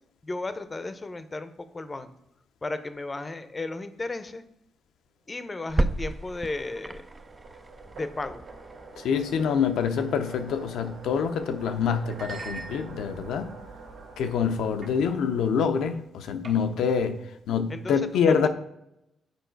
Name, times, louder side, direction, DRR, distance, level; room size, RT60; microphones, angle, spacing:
voice 1, 0.2-2.1 2.6-4.4 5.3-7.0 8.0-8.5 17.7-18.5, left 2 dB, 25° left, 11 dB, 0.6 m, -34 dB
sound 1, 5.6-16.2, right 3 dB, 80° right, 2.0 m, -47 dB
sound 2, 5.7-15.0, right 2 dB, 25° right, 0.4 m, -36 dB
voice 2, 9.0-13.5 14.2-17.2 17.5-18.5, left 6 dB, 80° left, 7 dB, 0.6 m, -26 dB
sound 3, 11.2-11.4 12.1-13.3 13.9-14.2 14.8-15.0 15.3-15.5 16.4-16.9, right 4 dB, 60° right, 1.8 m, -43 dB
6.9 x 4.6 x 4.5 m, 0.82 s
cardioid pair, 85°, 0 cm